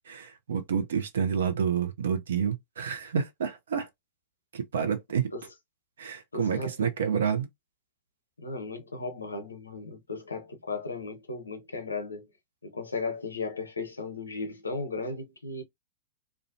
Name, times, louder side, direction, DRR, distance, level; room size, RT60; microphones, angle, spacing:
voice 1, 0.0-3.9 4.5-5.3 6.0-7.5, right 7 dB, 70° right, 0.6 m, -29 dB
voice 2, 6.3-6.7 8.4-12.3 12.6-15.6, left 3 dB, 85° left, 0.7 m, -36 dB
2.5 x 2.2 x 2.6 m
figure-of-eight pair, 95°, 0 cm